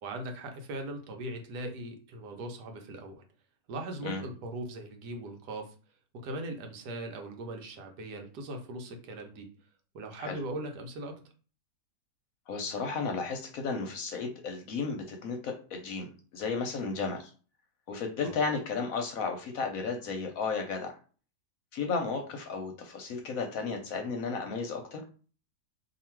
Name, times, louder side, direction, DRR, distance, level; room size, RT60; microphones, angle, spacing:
voice 1, 0.0-3.2 3.7-5.7 6.1-9.5 9.9-11.1 18.2-18.4, right 1 dB, 75° right, 4 dB, 1.3 m, -39 dB
voice 2, 12.5-17.3 17.9-20.9 21.7-25.0, left 4 dB, 65° left, 3 dB, 0.9 m, -33 dB
2.9 x 2.5 x 4.3 m, 0.39 s
omnidirectional pair, 1.8 m